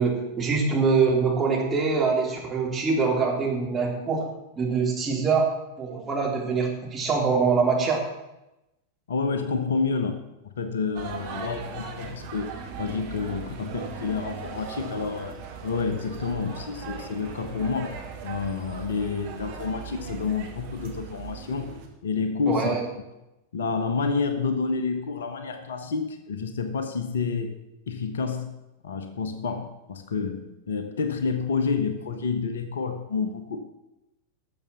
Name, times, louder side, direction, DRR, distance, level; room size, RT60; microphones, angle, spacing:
voice 1, 0.0-4.2 4.5-5.5 5.8-8.0 11.3-11.5 22.5-22.8, right 5 dB, 20° right, -1 dB, 3.3 m, -24 dB
voice 2, 9.1-22.7 23.5-27.5 27.9-28.6 28.8-33.6, left 5 dB, 65° left, 9 dB, 1.2 m, -29 dB
sound 1, 10.9-21.9, right 6 dB, 50° right, 2.4 m, -39 dB
12.5 x 7.0 x 7.4 m, 0.94 s
figure-of-eight pair, 90°, 0 cm